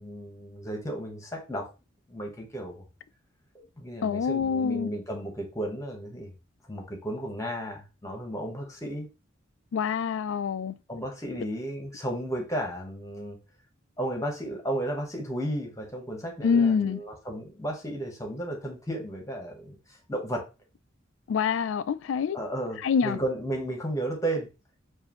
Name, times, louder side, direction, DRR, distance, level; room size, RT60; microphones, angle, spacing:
voice 1, 0.0-1.7 2.1-2.8 3.8-6.3 6.7-9.1 10.9-13.4 14.0-19.8 20.1-20.4 22.3-24.5, right 1 dB, 15° left, 1.2 m, -33 dB
voice 2, 4.0-4.9 9.7-10.7 16.4-17.0 21.3-22.4 22.8-23.2, left 6 dB, 70° left, 0.3 m, -26 dB
4.8 x 2.6 x 3.0 m
head